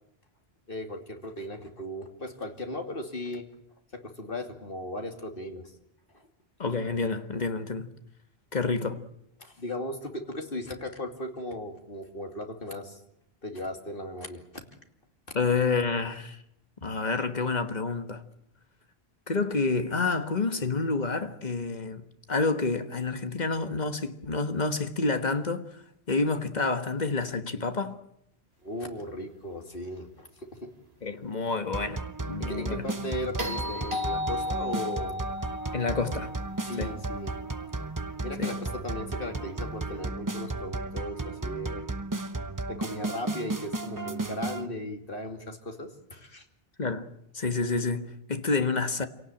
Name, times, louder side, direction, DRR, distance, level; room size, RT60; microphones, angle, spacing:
voice 1, 0.7-3.4 3.9-5.7 6.1-6.2 9.4-13.0 13.4-14.4 28.6-30.7 32.4-35.1 36.6-37.3 38.2-41.9 42.7-46.4, left 1 dB, 60° left, 2.9 m, -37 dB
voice 2, 6.6-7.9 8.5-9.0 15.3-16.4 16.8-18.2 19.3-25.8 26.1-28.0 31.0-32.9 35.7-36.3 36.8-37.0 38.4-38.6 46.8-47.1 47.3-49.1, left 4 dB, 45° left, 1.6 m, -29 dB
sound 1, 31.7-44.7, right 2 dB, 20° right, 0.9 m, -34 dB
sound 2, 33.4-37.7 39.9-40.0, left 2 dB, 80° right, 3.2 m, -35 dB
27.0 x 17.5 x 9.0 m
omnidirectional pair, 1.0 m